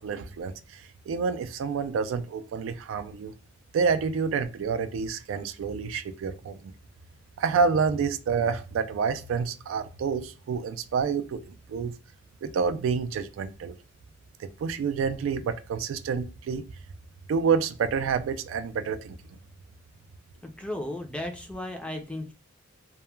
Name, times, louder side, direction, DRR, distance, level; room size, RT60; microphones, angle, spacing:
voice 1, 0.0-3.3 3.7-6.7 7.4-11.9 12.4-13.8 14.4-16.7 17.3-19.2, right 5 dB, 80° right, 0.3 m, -28 dB
voice 2, 20.4-22.3, left 1 dB, 5° left, 0.4 m, -35 dB
2.2 x 2.1 x 3.0 m
head